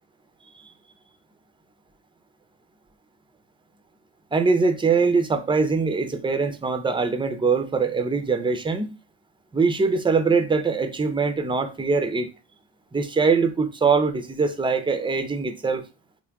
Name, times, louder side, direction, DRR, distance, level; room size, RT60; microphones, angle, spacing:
voice 1, 4.3-8.9 9.5-12.3 12.9-15.8, right 4 dB, 10° right, 0.4 m, -22 dB
3.5 x 2.2 x 3.4 m
cardioid pair, 85°, 46 cm